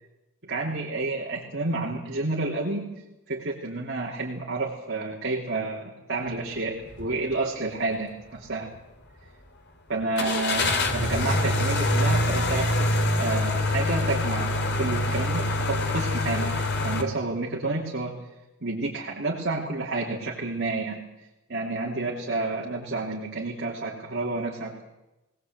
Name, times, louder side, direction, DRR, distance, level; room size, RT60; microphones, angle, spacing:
voice 1, 0.5-2.9 3.3-8.7 9.9-16.5 16.8-18.1 18.6-21.0 21.5-24.8, right 3 dB, 55° right, -3 dB, 3.1 m, -30 dB
sound 1, 6.9-7.1 7.6-7.7 10.2-17.0, left 2 dB, 55° left, 2.5 m, -25 dB
20.5 x 19.5 x 8.1 m, 1.0 s
head